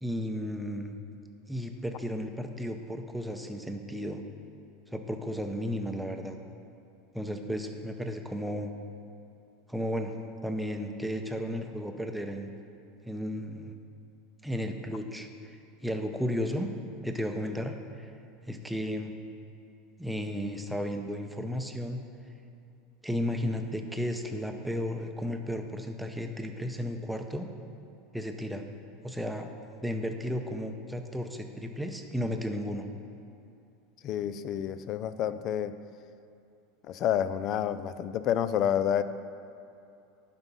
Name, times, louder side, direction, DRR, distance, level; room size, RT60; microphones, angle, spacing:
voice 1, 0.0-1.0 1.5-4.2 4.9-6.4 7.1-8.7 9.7-10.1 10.4-12.5 13.0-13.7 14.4-15.3 15.8-16.7 17.0-18.1 18.5-19.1 20.0-22.0 23.0-27.5 28.1-28.6 29.0-29.5 29.8-32.9, equal, ahead, 4 dB, 0.7 m, -34 dB
voice 2, 34.0-35.7 36.9-39.0, left 10 dB, 45° left, 13 dB, 0.4 m, -29 dB
9.6 x 5.9 x 5.4 m, 2.6 s
supercardioid pair, 120°, 0 cm